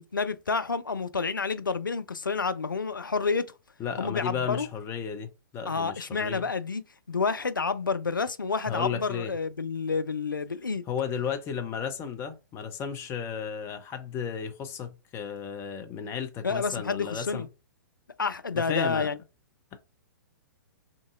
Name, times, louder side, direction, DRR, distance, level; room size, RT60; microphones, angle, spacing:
voice 1, 0.0-3.5 4.0-4.7 5.7-6.8 7.1-10.8 16.4-17.5 18.2-19.2, left 4 dB, 85° left, 0.4 m, -29 dB
voice 2, 3.8-6.4 8.7-9.3 10.9-17.5 18.5-19.1, left 7 dB, 20° left, 0.6 m, -34 dB
3.6 x 2.6 x 2.4 m
figure-of-eight pair, 115°, 11 cm